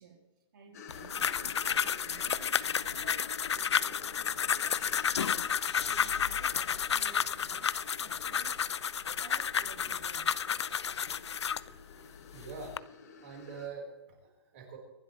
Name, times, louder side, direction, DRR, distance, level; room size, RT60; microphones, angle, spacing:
voice 1, 0.0-8.7 9.2-10.4, right 5 dB, 45° right, -1 dB, 3.1 m, -54 dB
sound 1, 0.7-13.7, left 6 dB, 35° left, 2.2 m, -50 dB
sound 2, 0.9-11.7 12.3-12.8, left 7 dB, 75° left, 0.6 m, -31 dB
voice 2, 12.1-12.8 13.2-14.8, right 5 dB, 30° right, 0 dB, 4.8 m, -45 dB
26.0 x 12.0 x 3.4 m, 1.1 s
hypercardioid pair, 175°, 15 cm